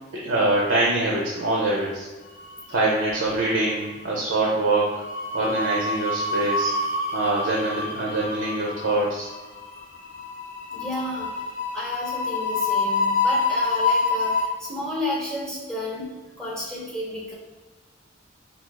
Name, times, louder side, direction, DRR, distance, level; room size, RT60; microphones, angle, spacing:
voice 1, 0.2-2.1 2.7-4.9 5.3-6.7 7.1-9.3, right 2 dB, 75° right, -4 dB, 0.6 m, -24 dB
sound 1, 2.4-3.2 3.5-3.7 4.9-14.5, left 3 dB, 80° left, 0.7 m, -27 dB
voice 2, 10.7-11.4 11.7-17.3, left 1 dB, 5° left, -6 dB, 0.6 m, -32 dB
4.3 x 2.3 x 2.3 m, 1.3 s
head